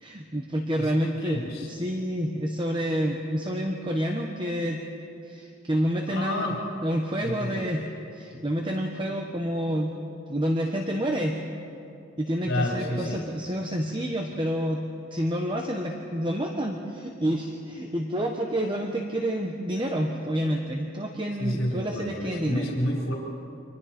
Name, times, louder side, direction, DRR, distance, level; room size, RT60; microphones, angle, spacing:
voice 1, 0.0-4.8 5.2-6.5 6.8-7.8 8.1-10.0 10.3-11.4 12.2-14.8 15.1-22.6, equal, 25° right, 2 dB, 1.2 m, -28 dB
voice 2, 0.8-1.7 6.1-6.7 7.2-7.9 12.4-13.2 21.4-23.1, left 1 dB, 80° left, -2 dB, 3.7 m, -30 dB
29.5 x 25.0 x 4.4 m, 2.6 s
head